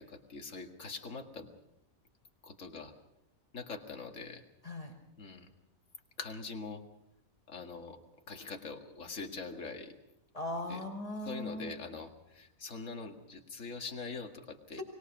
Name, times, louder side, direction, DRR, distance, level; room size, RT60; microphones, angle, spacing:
voice 1, 0.0-1.5 2.4-2.9 3.5-4.4 5.2-5.5 6.2-6.8 7.5-8.0 8.3-9.9 10.7-10.8 11.2-14.8, left 4 dB, 55° left, 5 dB, 2.4 m, -43 dB
voice 2, 10.3-11.7 14.7-14.8, left 1 dB, 25° left, 0 dB, 5.2 m, -39 dB
24.5 x 20.5 x 6.0 m, 0.82 s
omnidirectional pair, 1.5 m